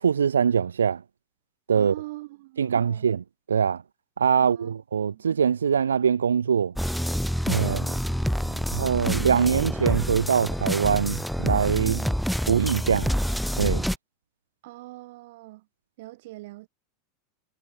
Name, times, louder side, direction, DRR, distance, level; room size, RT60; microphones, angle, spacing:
voice 1, 0.0-1.0 1.7-1.9 2.6-3.8 4.2-6.7 7.5-7.8 8.7-11.9 12.5-13.1 13.6-13.8, right 7 dB, 80° right, 0.6 m, -23 dB
voice 2, 1.7-3.1 4.4-4.7 5.1-5.2 7.7-8.7 11.8-12.2 14.6-15.7 16.0-16.7, right 19 dB, 60° right, 7.7 m, -42 dB
sound 1, 6.8-14.0, equal, ahead, 0.7 m, -27 dB
hypercardioid pair, 90°, 0 cm